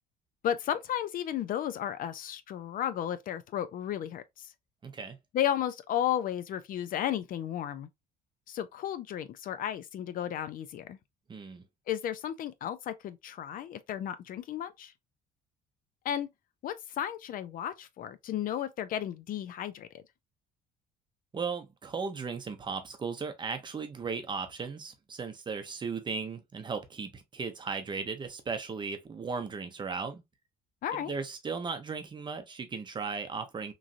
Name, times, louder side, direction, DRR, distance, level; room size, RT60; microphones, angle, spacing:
voice 1, 0.4-4.5 5.3-7.9 8.5-11.0 11.9-14.9 16.0-16.3 16.6-20.0 30.8-31.1, left 10 dB, 55° left, 0.4 m, -33 dB
voice 2, 4.8-5.2 11.3-11.6 21.3-30.2 30.9-33.7, right 5 dB, 25° right, 0.6 m, -36 dB
3.0 x 2.5 x 2.5 m
cardioid pair, 110°, 17 cm